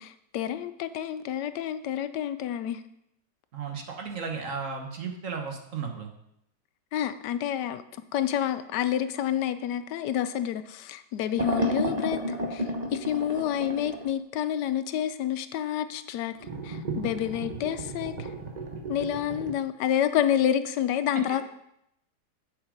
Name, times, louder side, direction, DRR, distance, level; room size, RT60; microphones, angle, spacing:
voice 1, 0.0-2.8 6.9-7.8 8.1-12.2 12.5-16.4 16.6-18.3 18.9-21.4, left 10 dB, 80° left, 12 dB, 1.2 m, -29 dB
voice 2, 3.5-6.1, right 5 dB, 50° right, 3 dB, 1.4 m, -34 dB
sound 1, 11.4-14.1 16.4-19.5, equal, 30° right, 1.0 m, -32 dB
8.1 x 7.3 x 5.1 m, 0.78 s
omnidirectional pair, 1.8 m